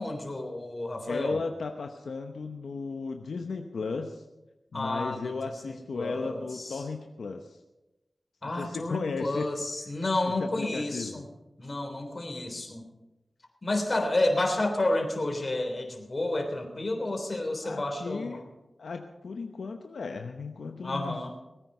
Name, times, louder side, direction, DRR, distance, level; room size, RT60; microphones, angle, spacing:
voice 1, 0.0-1.4 4.7-6.8 8.4-11.3 11.6-12.9 13.6-18.5 20.8-21.3, left 2 dB, 45° left, 4 dB, 3.4 m, -30 dB
voice 2, 1.1-4.2 4.7-7.6 8.6-9.5 10.4-11.2 17.6-18.4 18.8-21.3, left 4 dB, 90° left, 5 dB, 0.9 m, -35 dB
20.5 x 9.2 x 5.5 m, 1.0 s
cardioid pair, 50°, 0 cm